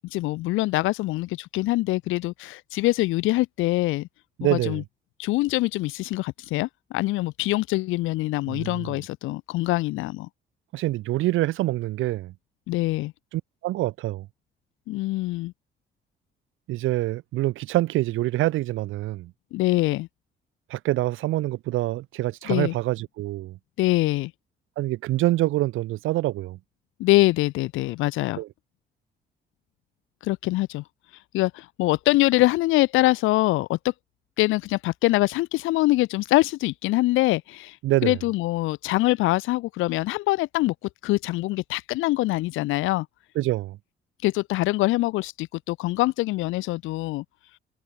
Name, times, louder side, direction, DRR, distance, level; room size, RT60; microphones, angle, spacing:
voice 1, 0.1-4.1 4.5-4.8 5.2-10.3 12.7-13.1 14.9-15.5 19.5-20.1 22.5-22.7 23.8-24.3 27.0-28.4 30.2-30.8 31.3-33.9 34.4-37.8 38.0-40.7 41.0-43.1 44.2-47.2, left 19 dB, 90° left, 0.5 m, -24 dB
voice 2, 4.4-4.8 8.5-9.0 10.7-12.3 13.6-14.3 16.7-19.3 20.7-23.6 24.8-26.6 28.4-28.5 37.8-38.2 43.4-43.8, right 16 dB, 85° right, 0.8 m, -25 dB
cardioid pair, 90°, 20 cm